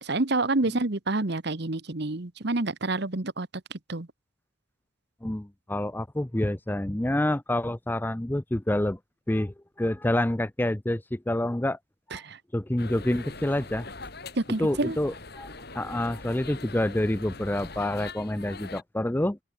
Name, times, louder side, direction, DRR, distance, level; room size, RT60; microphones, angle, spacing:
voice 1, 0.0-3.5 3.9-4.1 12.1-12.4 14.4-15.0, right 2 dB, 55° right, 1.2 m, -28 dB
voice 2, 5.2-9.0 9.3-11.8 12.1-12.2 12.5-13.9 14.6-15.5 15.7-19.4, left 1 dB, 10° left, 0.5 m, -27 dB
sound 1, 12.8-18.8, left 3 dB, 50° left, 3.8 m, -42 dB
open air
head